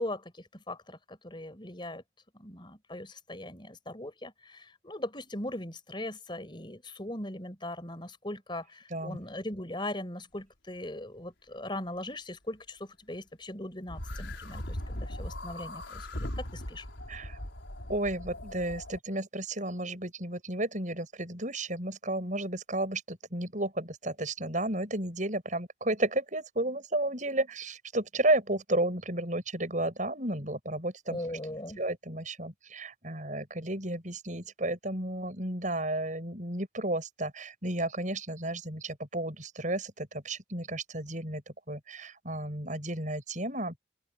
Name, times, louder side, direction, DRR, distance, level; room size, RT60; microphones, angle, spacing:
voice 1, 0.0-2.0 2.3-16.8 31.1-31.8, left 1 dB, 25° left, 4.9 m, -39 dB
sound 1, 13.9-19.0, left 1 dB, 85° left, 4.7 m, -39 dB
voice 2, 17.1-17.4 17.9-31.4 31.8-41.4 41.7-43.7, right 1 dB, 40° right, 7.9 m, -32 dB
open air
head